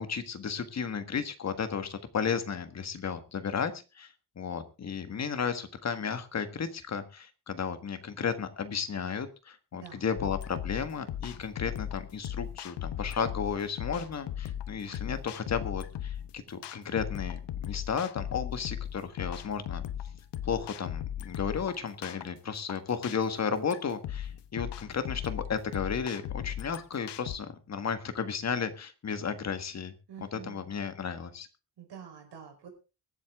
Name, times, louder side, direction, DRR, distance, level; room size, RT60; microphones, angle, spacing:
voice 1, 0.0-19.8 20.4-29.9 30.2-31.5, left 6 dB, 40° left, 9 dB, 1.6 m, -34 dB
sound 1, 10.2-27.4, left 10 dB, 90° left, 1.1 m, -38 dB
voice 2, 30.1-30.7 31.8-32.7, right 8 dB, 85° right, 3 dB, 5.1 m, -47 dB
23.5 x 8.0 x 3.6 m, 0.30 s
wide cardioid pair, 170°, 40 cm